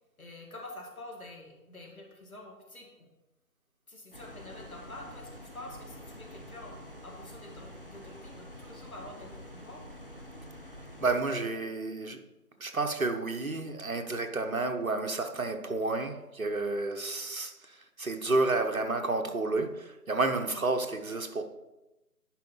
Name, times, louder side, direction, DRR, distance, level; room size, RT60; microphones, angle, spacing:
voice 1, 0.2-2.9 3.9-9.8, left 2 dB, 60° left, 1 dB, 2.2 m, -47 dB
sound 1, 4.1-11.2, equal, 35° left, 0.7 m, -47 dB
voice 2, 11.0-12.2 12.6-21.4, right 3 dB, 60° right, 6 dB, 1.1 m, -30 dB
10.5 x 5.0 x 3.9 m, 1.0 s
figure-of-eight pair, 160°, 47 cm